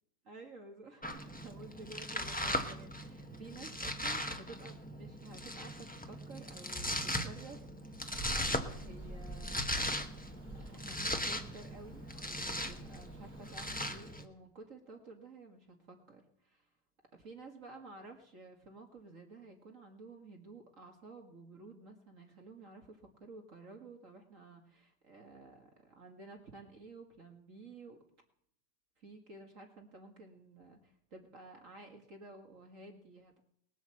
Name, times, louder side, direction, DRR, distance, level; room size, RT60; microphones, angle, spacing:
voice 1, 0.3-8.0 8.3-9.8 10.7-16.7 17.1-28.0 29.0-33.4, right 3 dB, 45° right, 3 dB, 2.1 m, -53 dB
Domestic sounds home sounds, 1.0-14.2, left 1 dB, 5° left, 1.0 m, -39 dB
sound 1, 8.1-13.9, right 1 dB, 25° right, 3.7 m, -49 dB
20.0 x 8.2 x 7.6 m, 0.73 s
omnidirectional pair, 1.9 m